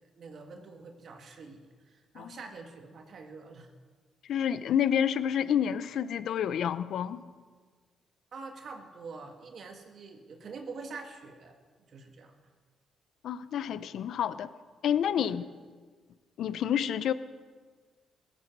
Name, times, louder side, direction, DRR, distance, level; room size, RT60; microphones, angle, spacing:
voice 1, 0.2-3.7 8.3-11.6 11.9-12.4 15.2-15.4, right 4 dB, 55° right, 4 dB, 2.0 m, -45 dB
voice 2, 4.2-7.2 13.2-14.5 14.8-15.4 16.4-17.1, left 9 dB, 70° left, 14 dB, 0.6 m, -29 dB
16.5 x 14.0 x 6.1 m, 1.5 s
cardioid pair, 90°, 0 cm